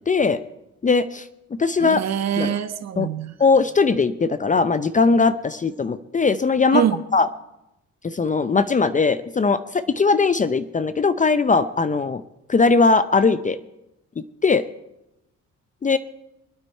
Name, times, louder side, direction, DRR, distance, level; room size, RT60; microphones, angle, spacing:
voice 1, 0.1-0.4 0.8-1.2 1.6-2.0 2.4-2.5 3.0-3.1 3.4-6.8 7.1-7.3 8.0-12.2 12.5-13.6 14.4-14.7 15.8-16.0, left 4 dB, 25° left, 13 dB, 0.6 m, -19 dB
voice 2, 1.8-3.3 6.7-7.0, right 9 dB, 60° right, 9 dB, 1.2 m, -24 dB
24.0 x 8.9 x 4.5 m, 0.89 s
cardioid pair, 90°, 30 cm